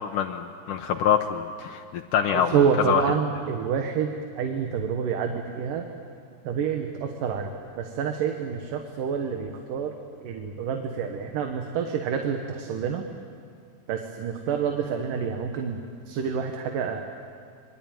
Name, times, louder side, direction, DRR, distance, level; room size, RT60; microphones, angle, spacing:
voice 1, 0.0-3.0, left 8 dB, 75° left, 4 dB, 2.4 m, -25 dB
voice 2, 2.3-5.9 6.4-7.5 7.8-9.9 10.2-13.0 13.9-15.8 16.1-17.0, right 7 dB, 75° right, 4 dB, 3.0 m, -28 dB
26.5 x 23.0 x 9.1 m, 2.2 s
omnidirectional pair, 3.9 m